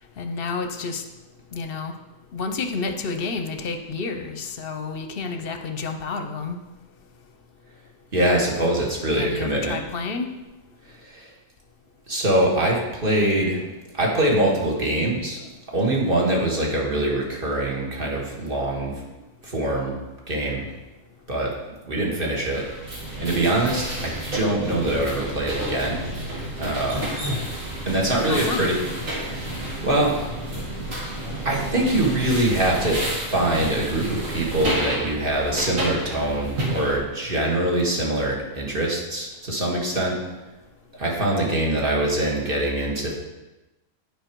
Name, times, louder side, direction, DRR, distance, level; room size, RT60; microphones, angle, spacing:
voice 1, 0.2-1.0 1.5-1.9 2.3-6.6 9.1-10.3 28.3-28.7, left 4 dB, 55° left, 6 dB, 0.8 m, -30 dB
voice 2, 8.1-9.8 11.0-11.3 12.1-13.6 13.9-15.5 15.7-19.2 19.4-20.0 20.3-20.7 21.3-21.5 21.8-22.7 23.2-26.0 26.6-27.1 27.9-28.7 29.1-30.2 30.5-30.6 31.4-40.2 40.9-43.1, right 1 dB, 45° right, -2 dB, 1.7 m, -23 dB
sound 1, 22.5-37.0, right 1 dB, 85° right, 2.3 m, -31 dB
Drip, 26.8-30.9, left 1 dB, 20° right, 2.4 m, -35 dB
9.1 x 5.2 x 4.5 m, 1.1 s
omnidirectional pair, 1.3 m